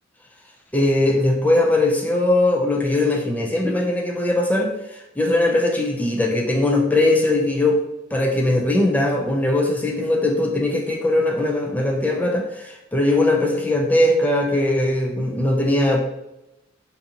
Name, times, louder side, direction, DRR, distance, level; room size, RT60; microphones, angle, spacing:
voice 1, 0.7-7.8 8.1-16.0, left 1 dB, 10° left, -1 dB, 0.4 m, -20 dB
3.8 x 2.6 x 2.8 m, 0.92 s
head